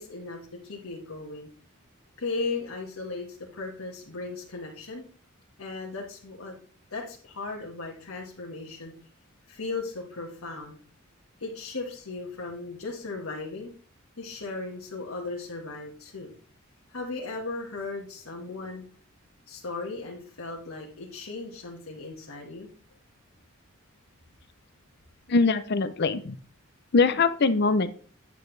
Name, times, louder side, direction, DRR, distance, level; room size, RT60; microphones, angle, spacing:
voice 1, 0.0-1.5 2.2-5.0 5.6-6.5 6.9-8.9 9.5-10.8 11.4-13.7 14.2-16.3 16.9-18.9 19.5-22.7, left 3 dB, 85° left, -2 dB, 1.7 m, -36 dB
voice 2, 25.3-26.4 26.9-27.9, left 4 dB, 50° left, 12 dB, 0.6 m, -22 dB
9.1 x 8.2 x 3.3 m, 0.42 s
head